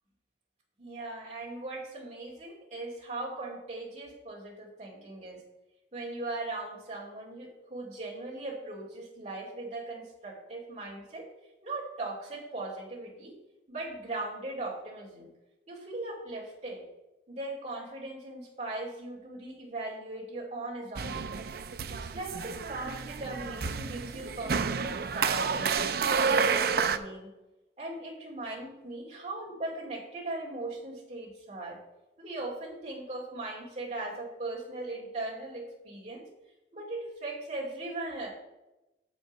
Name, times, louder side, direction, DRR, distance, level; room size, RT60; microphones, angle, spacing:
voice 1, 0.8-5.4 5.9-11.3 11.6-13.3 13.7-15.3 15.7-16.8 17.3-21.5 21.9-25.9 26.2-27.3 27.8-31.8 32.2-36.2 36.7-38.3, right 2 dB, 35° right, -5 dB, 2.6 m, -39 dB
sound 1, 21.0-27.0, right 5 dB, 55° right, 0.4 m, -30 dB
7.1 x 5.3 x 6.4 m, 0.99 s
head